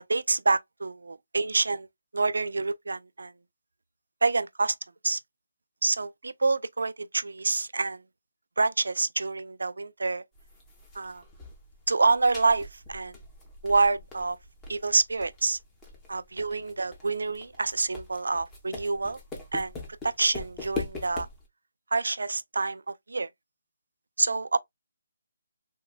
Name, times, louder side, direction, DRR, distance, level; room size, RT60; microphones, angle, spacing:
voice 1, 0.0-1.9 2.1-3.3 4.2-4.8 5.0-5.2 5.8-8.0 8.6-10.2 10.9-11.2 11.9-13.1 13.6-14.4 14.7-15.6 16.1-19.2 19.5-19.8 20.0-21.3 21.9-23.3 24.2-24.6, right 3 dB, 85° right, 0.4 m, -27 dB
sound 1, 10.3-21.5, left 3 dB, 10° left, 0.6 m, -42 dB
3.6 x 2.1 x 2.3 m
hypercardioid pair, 170°, 0 cm